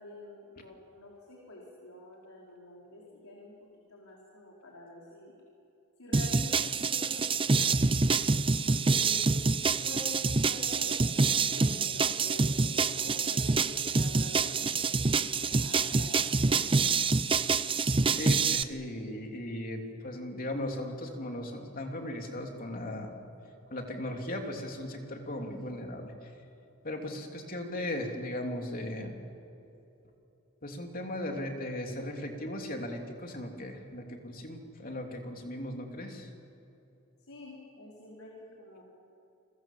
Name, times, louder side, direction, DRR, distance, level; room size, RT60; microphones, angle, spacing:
voice 1, 0.0-3.5 3.9-5.3 6.0-9.4 9.7-16.7 37.2-38.8, left 1 dB, 75° left, -3 dB, 4.8 m, -48 dB
sound 1, 6.1-18.6, right 4 dB, 25° right, 0.6 m, -27 dB
voice 2, 18.1-23.2 23.7-26.1 26.8-29.2 30.6-36.3, left 1 dB, 40° left, 2 dB, 3.2 m, -37 dB
29.0 x 23.5 x 7.5 m, 2.9 s
head